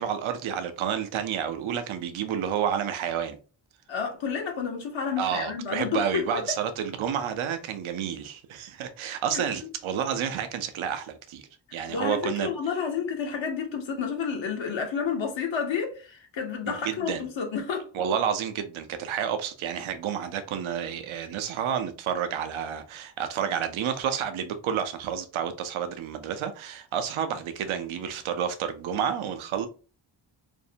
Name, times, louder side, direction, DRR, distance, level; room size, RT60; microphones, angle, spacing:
voice 1, 0.0-3.4 5.2-11.4 11.7-12.5 16.7-17.2 17.9-29.7, right 8 dB, 80° right, 0.5 m, -30 dB
voice 2, 3.9-6.4 9.3-9.5 11.9-17.9, left 6 dB, 70° left, 0.8 m, -30 dB
2.6 x 2.0 x 2.6 m
cardioid pair, 55°, 47 cm